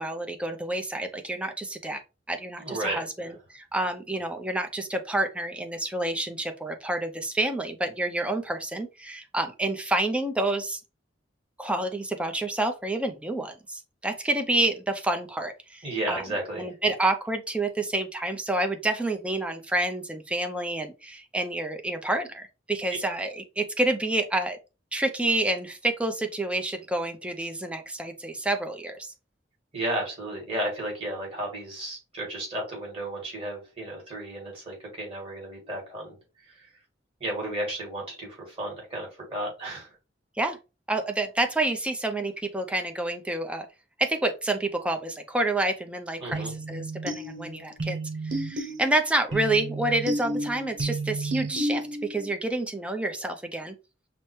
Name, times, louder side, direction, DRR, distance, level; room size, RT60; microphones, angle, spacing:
voice 1, 0.0-2.0 2.3-10.8 11.6-16.2 16.6-24.6 24.9-29.1 40.4-40.6 40.9-43.7 44.0-48.0 48.2-53.7, right 2 dB, 5° right, 0.5 m, -28 dB
voice 2, 2.6-3.0 15.8-16.7 29.7-36.2 37.2-39.9 46.2-46.5, right 1 dB, 30° right, 2.4 m, -33 dB
sound 1, 46.3-52.3, right 2 dB, 80° right, 0.9 m, -32 dB
5.9 x 2.1 x 3.1 m
head